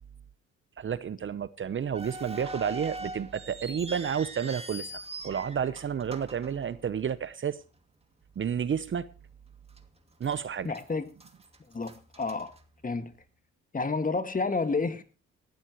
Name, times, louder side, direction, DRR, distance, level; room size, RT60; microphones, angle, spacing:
voice 1, 0.8-7.6 8.4-9.1 10.2-10.7, right 7 dB, 40° right, 0.8 m, -31 dB
sound 1, 1.9-7.3 7.6-7.7 8.4-8.6 9.1-9.2 9.8-10.4 10.7-13.2, right 1 dB, 20° right, 2.4 m, -42 dB
voice 2, 10.6-11.1 11.7-12.5 12.8-13.1 13.7-15.0, left 4 dB, 25° left, 1.9 m, -30 dB
18.0 x 12.5 x 3.1 m
cardioid pair, 90°, 30 cm